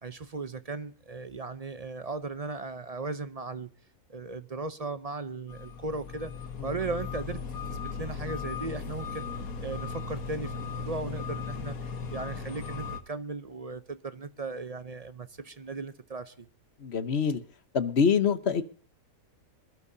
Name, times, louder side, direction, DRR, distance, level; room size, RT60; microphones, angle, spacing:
voice 1, 0.0-3.7 4.1-6.3 6.6-7.4 7.7-9.3 9.6-16.5, right 3 dB, 40° right, 0.6 m, -37 dB
sound 1, 5.5-13.0, left 5 dB, 70° left, 1.8 m, -37 dB
voice 2, 16.8-17.4 17.7-18.6, left 6 dB, 50° left, 1.2 m, -25 dB
26.0 x 12.0 x 2.7 m
omnidirectional pair, 1.6 m